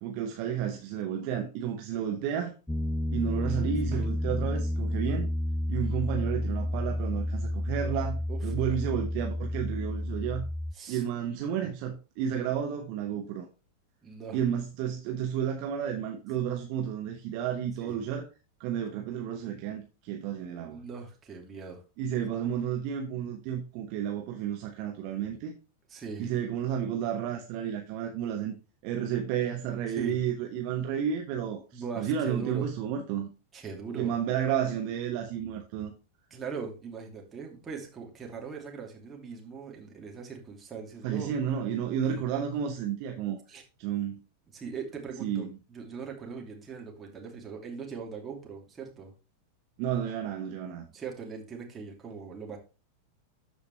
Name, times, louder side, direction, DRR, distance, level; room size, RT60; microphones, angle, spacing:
voice 1, 0.0-2.5 3.1-5.3 5.7-10.4 10.9-13.5 14.3-18.3 18.6-20.8 22.0-25.5 26.2-28.5 28.8-33.3 33.9-35.9 41.0-43.4 43.8-44.2 45.2-45.5 49.8-50.8, right 9 dB, 45° right, 1.2 m, -31 dB
Piano, 2.7-10.7, left 1 dB, 10° left, 0.4 m, -31 dB
voice 2, 8.3-8.8 10.7-11.0 14.0-14.4 17.8-18.0 20.7-21.8 25.9-26.3 29.9-30.2 31.7-32.7 33.5-34.1 36.3-41.3 42.0-42.2 43.5-43.6 44.5-49.1 50.9-52.6, right 5 dB, 20° right, 2.8 m, -40 dB
13.0 x 5.1 x 3.2 m
figure-of-eight pair, 90°, 0 cm